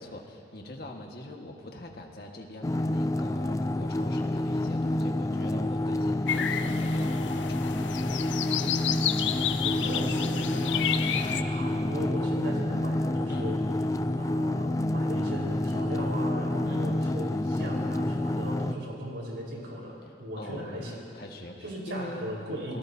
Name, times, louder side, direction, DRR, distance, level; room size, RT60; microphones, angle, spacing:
voice 1, 0.0-7.8 13.3-13.6 16.6-17.0 20.4-22.3 22.7-22.8, left 1 dB, 55° left, 1 dB, 1.6 m, -43 dB
sound 1, 2.6-18.7, left 1 dB, 20° left, 0.3 m, -28 dB
sound 2, 6.3-11.4, left 9 dB, 85° left, 0.5 m, -31 dB
voice 2, 9.3-13.6 14.1-21.0 21.6-22.8, equal, 85° right, -3 dB, 4.5 m, -37 dB
26.5 x 19.0 x 2.8 m, 2.4 s
head